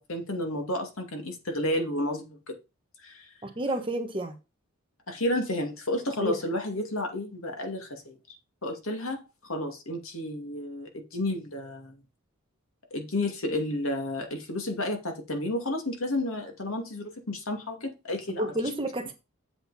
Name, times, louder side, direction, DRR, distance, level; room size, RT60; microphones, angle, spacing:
voice 1, 0.0-2.6 3.0-3.3 5.1-8.2 8.6-12.0 12.9-18.5, left 1 dB, 75° left, 2.4 m, -31 dB
voice 2, 3.4-4.3 6.2-6.3 18.4-19.1, right 1 dB, 25° right, 1.4 m, -30 dB
8.1 x 7.9 x 4.3 m
head